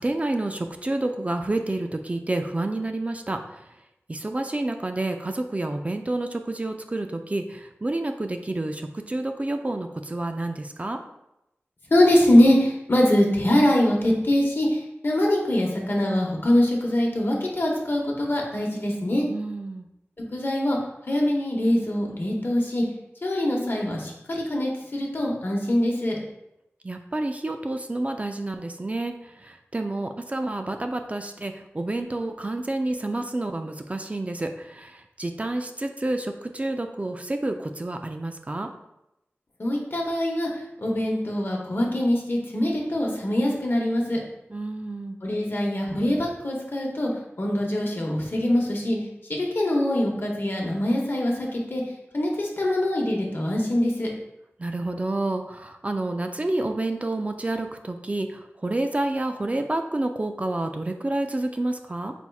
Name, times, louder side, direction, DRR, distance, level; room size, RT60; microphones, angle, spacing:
voice 1, 0.0-3.6 4.1-11.0 19.3-19.9 26.8-38.7 44.5-45.2 54.6-62.1, right 2 dB, 30° right, 5 dB, 0.3 m, -29 dB
voice 2, 11.9-19.3 20.3-20.8 21.1-22.8 23.2-26.2 39.6-40.5 40.8-44.2 45.2-47.1 47.4-49.0 49.3-51.8 52.1-54.1, left 1 dB, 55° left, -1 dB, 0.9 m, -23 dB
4.4 x 4.2 x 2.3 m, 0.87 s
wide cardioid pair, 65°, 4 cm